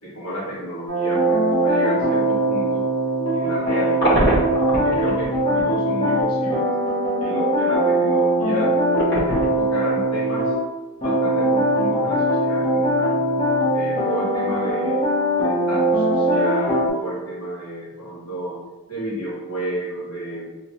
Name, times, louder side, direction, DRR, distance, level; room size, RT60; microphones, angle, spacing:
voice 1, 0.0-2.9 3.3-4.3 4.7-6.7 7.2-8.8 9.1-10.5 11.0-13.4 13.7-15.0 15.4-18.6 18.9-20.6, equal, 85° left, -5 dB, 1.3 m, -31 dB
sound 1, 0.9-10.6 11.0-16.9, right 1 dB, 25° left, 0.9 m, -21 dB
sound 2, 3.3-5.6 6.2-6.3 8.8-10.0 10.4-10.5 14.0-14.4 14.8-14.9, equal, 50° left, 1.3 m, -23 dB
3.5 x 2.8 x 3.0 m, 1.2 s
head